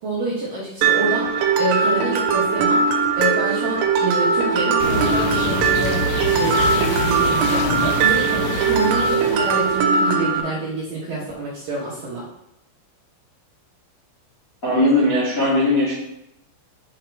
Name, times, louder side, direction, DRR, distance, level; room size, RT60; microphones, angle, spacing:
voice 1, 0.0-6.0 6.3-12.2, right 2 dB, 65° right, -8 dB, 2.2 m, -27 dB
Mallet percussion, 0.8-10.4, right 5 dB, 85° right, 3.4 m, -20 dB
sound 1, 4.8-9.9, left 3 dB, 85° left, 3.7 m, -27 dB
voice 2, 14.6-15.9, left 1 dB, 40° left, -8 dB, 1.1 m, -18 dB
8.9 x 5.6 x 3.4 m, 0.84 s
omnidirectional pair, 5.9 m